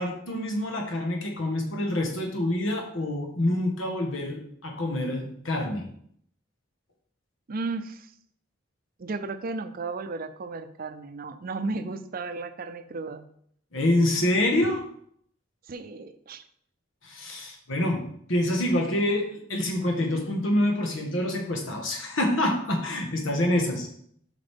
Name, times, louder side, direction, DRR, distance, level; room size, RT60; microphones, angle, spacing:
voice 1, 0.0-5.9 13.7-14.8 17.0-23.9, left 1 dB, 80° left, 2 dB, 1.5 m, -26 dB
voice 2, 7.5-8.1 9.0-13.2 15.7-16.4, right 3 dB, 50° right, 10 dB, 0.5 m, -34 dB
7.7 x 5.0 x 3.6 m, 0.66 s
head